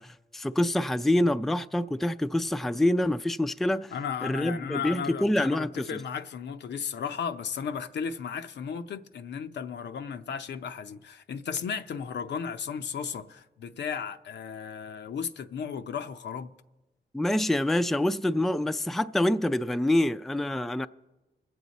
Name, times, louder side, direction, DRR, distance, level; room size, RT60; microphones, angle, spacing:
voice 1, 0.0-3.9 4.2-5.9 17.1-20.9, left 1 dB, ahead, 0.3 m, -26 dB
voice 2, 3.9-16.5, left 7 dB, 85° left, 0.6 m, -35 dB
22.5 x 7.9 x 4.1 m
cardioid pair, 85°, 18 cm